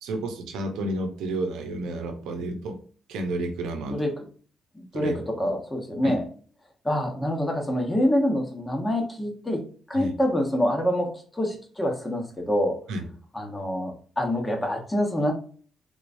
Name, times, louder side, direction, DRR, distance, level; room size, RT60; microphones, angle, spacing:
voice 1, 0.0-2.8 3.1-4.0 4.9-5.2 6.0-6.2 9.9-10.1 12.9-13.1, right 2 dB, 90° right, 5 dB, 0.7 m, -31 dB
voice 2, 4.7-6.3 6.8-9.6 9.9-12.7 13.3-15.3, left 1 dB, 15° left, 2 dB, 1.1 m, -26 dB
3.7 x 3.1 x 2.6 m, 0.43 s
cardioid pair, 90°, 0 cm